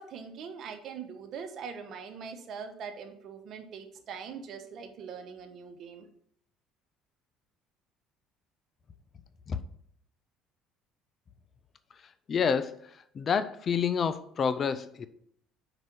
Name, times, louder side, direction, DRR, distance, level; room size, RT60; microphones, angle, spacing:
voice 1, 0.0-6.1, right 6 dB, 60° right, 7 dB, 1.1 m, -42 dB
voice 2, 12.3-15.1, left 6 dB, 40° left, 13 dB, 0.5 m, -29 dB
5.4 x 5.0 x 6.1 m, 0.69 s
supercardioid pair, 85°, 0 cm